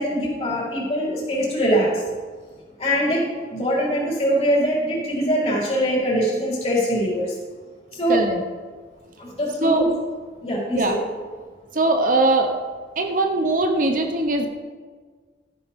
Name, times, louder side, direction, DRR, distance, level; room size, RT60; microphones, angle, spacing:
voice 1, 0.0-2.0 2.8-3.2 3.5-7.3 7.9-8.2 9.2-9.9 10.4-11.0, equal, 35° left, -5 dB, 3.8 m, -22 dB
voice 2, 8.1-8.4 9.6-9.9 10.7-11.0 11.7-12.5 13.0-14.5, right 2 dB, 45° right, 5 dB, 0.8 m, -20 dB
14.0 x 10.5 x 3.6 m, 1.5 s
head